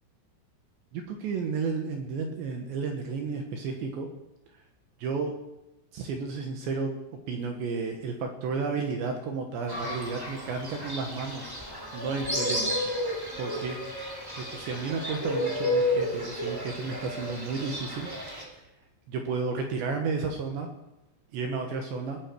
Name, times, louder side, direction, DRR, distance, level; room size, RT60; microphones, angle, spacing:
voice 1, 0.9-4.1 5.0-5.3 5.9-6.9 7.3-11.6 11.9-12.9 13.4-13.8 14.4-18.1 19.1-20.7 21.3-22.2, right 4 dB, 70° right, 3 dB, 3.4 m, -32 dB
Fowl, 9.7-18.4, left 1 dB, 10° right, 1.4 m, -32 dB
19.0 x 16.0 x 4.8 m, 0.93 s
omnidirectional pair, 5.8 m